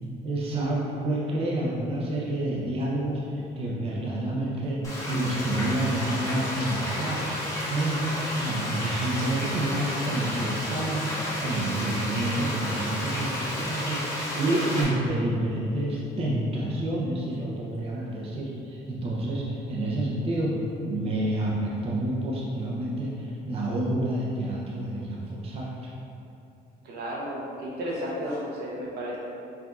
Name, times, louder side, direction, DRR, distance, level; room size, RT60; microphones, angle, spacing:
voice 1, 0.2-7.2 7.7-8.0 8.4-20.5 20.8-25.7, right 1 dB, 35° right, -5 dB, 0.6 m, -28 dB
Frying (food), 4.8-14.8, left 1 dB, 15° left, 1.0 m, -32 dB
voice 2, 26.8-29.2, equal, 70° right, -4 dB, 0.8 m, -33 dB
4.6 x 2.6 x 2.4 m, 2.6 s
cardioid pair, 110°, 17 cm